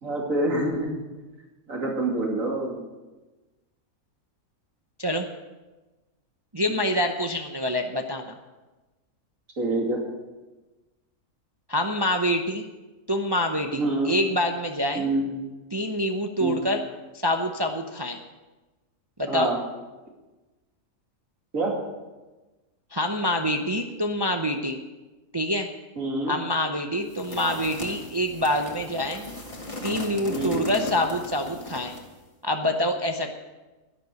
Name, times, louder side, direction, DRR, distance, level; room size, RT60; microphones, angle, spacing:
voice 1, 0.0-1.0 1.7-2.8 9.6-10.0 13.7-14.1 14.9-15.3 16.4-16.5 19.3-19.6 21.5-21.8 26.0-26.4 30.3-30.7, right 2 dB, 60° right, -1 dB, 3.0 m, -26 dB
voice 2, 6.5-8.4 11.7-12.6 13.1-15.0 15.7-16.8 17.1-18.2 19.2-19.5 22.9-24.8 25.3-25.7 26.3-29.2 29.8-32.0 32.4-33.3, left 1 dB, 25° right, 4 dB, 0.5 m, -26 dB
sound 1, 27.1-32.1, left 1 dB, 20° left, 2.0 m, -37 dB
12.0 x 11.0 x 6.6 m, 1.2 s
omnidirectional pair, 1.6 m